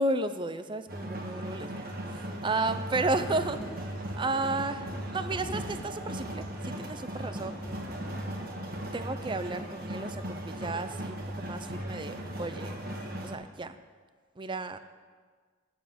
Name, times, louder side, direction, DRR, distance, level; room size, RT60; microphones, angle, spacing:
voice 1, 0.0-3.8 4.1-7.6 8.9-12.8 13.2-13.8 14.4-14.8, right 2 dB, 25° right, 11 dB, 0.5 m, -33 dB
sound 1, 0.9-13.4, right 1 dB, 50° right, 1.5 m, -38 dB
Thunder / Rain, 2.5-13.7, left 1 dB, 85° left, 2.6 m, -48 dB
12.0 x 7.1 x 7.5 m, 1.5 s
head